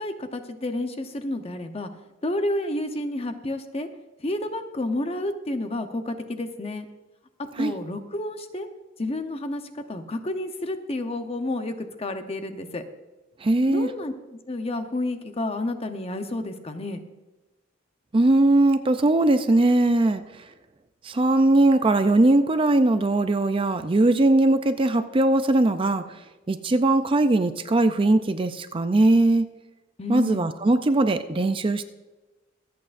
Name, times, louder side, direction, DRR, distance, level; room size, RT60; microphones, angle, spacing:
voice 1, 0.0-1.9 2.2-3.9 4.2-6.9 7.6-8.7 9.0-12.8 13.7-17.0 30.0-30.5, left 1 dB, 30° left, 7 dB, 0.8 m, -30 dB
voice 2, 13.4-13.9 18.1-20.2 21.0-26.0 26.5-29.5 30.1-31.8, right 2 dB, 25° right, 10 dB, 0.5 m, -20 dB
24.5 x 8.6 x 2.6 m, 1.1 s
head